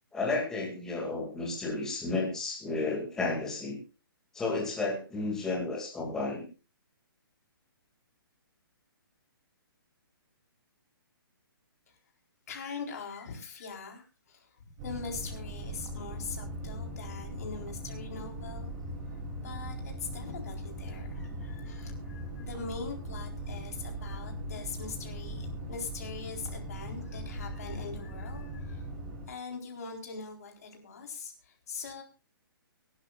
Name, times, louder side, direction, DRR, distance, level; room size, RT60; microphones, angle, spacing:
voice 1, 0.1-3.8 4.3-6.4, left 3 dB, 5° left, -3 dB, 2.3 m, -32 dB
voice 2, 12.5-18.7 19.4-28.9 29.2-32.0, left 4 dB, 40° left, 2 dB, 4.0 m, -42 dB
sound 1, 14.8-29.3, right 1 dB, 20° right, 2.8 m, -39 dB
24.0 x 12.0 x 2.4 m, 0.33 s
hypercardioid pair, 180°, 12 cm